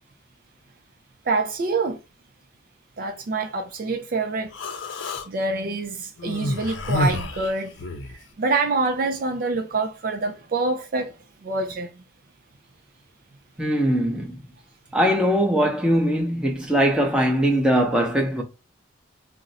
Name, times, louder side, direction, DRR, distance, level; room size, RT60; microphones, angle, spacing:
voice 1, 1.3-2.0 3.0-4.5 5.3-7.8 8.4-11.1 11.4-11.9, right 3 dB, 50° right, 0.4 m, -26 dB
Human voice, 4.5-5.3 6.2-8.2, left 2 dB, 85° left, 0.5 m, -28 dB
voice 2, 13.6-14.4 14.9-18.4, equal, 5° right, 0.7 m, -21 dB
2.5 x 2.1 x 3.9 m
head